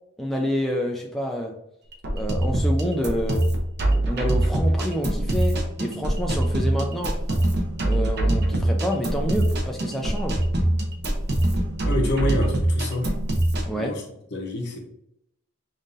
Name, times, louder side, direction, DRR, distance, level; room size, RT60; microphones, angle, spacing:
voice 1, 0.2-1.6 2.1-3.5 4.0-7.2 7.8-10.4 13.7-14.0, equal, ahead, 0 dB, 0.3 m, -28 dB
sound 1, 1.9-13.7, right 1 dB, 50° right, 0.8 m, -23 dB
voice 2, 11.8-13.1 13.7-14.0 14.3-14.8, left 1 dB, 55° left, 1 dB, 0.9 m, -27 dB
5.3 x 2.5 x 2.6 m, 0.77 s
head